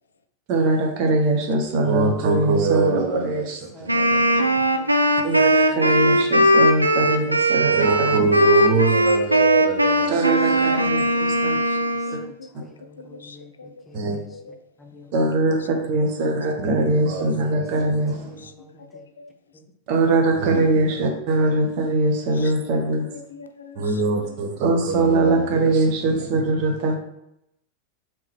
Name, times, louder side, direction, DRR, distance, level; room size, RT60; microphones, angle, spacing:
voice 1, 0.5-4.6 5.2-11.5 13.9-14.2 15.1-18.3 19.9-23.1 23.8-27.0, right 2 dB, 45° right, 0.8 m, -22 dB
voice 2, 3.3-4.4 4.7-4.9 5.7-5.8 10.2-15.1 17.3-19.1 19.5-19.7 20.4-20.5 25.6-26.0 26.7-27.0, left 2 dB, 15° left, 0.6 m, -48 dB
Wind instrument woodwind instrument, 3.9-12.3, right 1 dB, 85° right, 0.3 m, -19 dB
voice 3, 10.8-12.1 12.4-12.5 13.0-14.6 15.5-15.7 16.2-16.4 17.1-17.3 17.7-17.8 18.2-18.5 18.9-19.3 20.9-21.2 22.3-22.7 23.0-24.5 26.8-27.0, left 5 dB, 70° left, 0.3 m, -44 dB
3.6 x 2.9 x 3.3 m
figure-of-eight pair, 90°, 0 cm